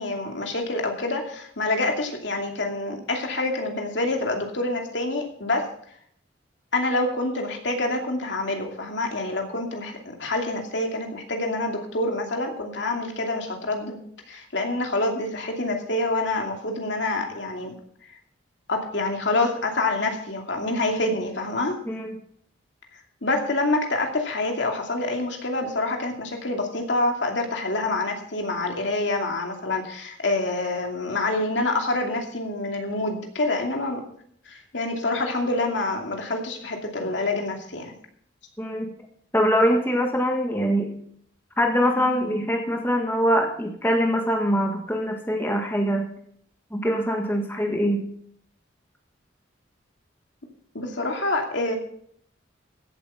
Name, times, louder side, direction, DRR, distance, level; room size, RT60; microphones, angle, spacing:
voice 1, 0.0-5.7 6.7-14.0 14.3-17.7 18.7-21.8 23.2-34.0 34.5-37.9 50.7-51.8, left 2 dB, 65° left, 2 dB, 2.6 m, -27 dB
voice 2, 38.6-38.9 39.3-40.9 41.6-46.0 46.7-48.0, equal, 10° left, 2 dB, 1.6 m, -23 dB
16.0 x 8.2 x 5.6 m, 0.65 s
head